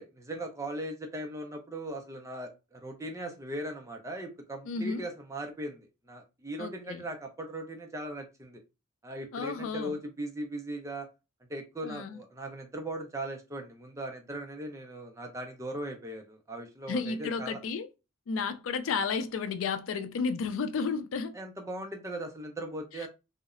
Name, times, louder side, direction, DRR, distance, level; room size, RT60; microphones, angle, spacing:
voice 1, 0.0-8.6 9.0-11.1 11.5-17.6 21.3-23.1, right 1 dB, 15° right, 0.4 m, -39 dB
voice 2, 4.7-5.1 6.6-7.0 9.3-10.0 11.8-12.2 16.9-17.9 18.3-21.3, left 5 dB, 85° left, 0.4 m, -32 dB
2.8 x 2.1 x 2.4 m
head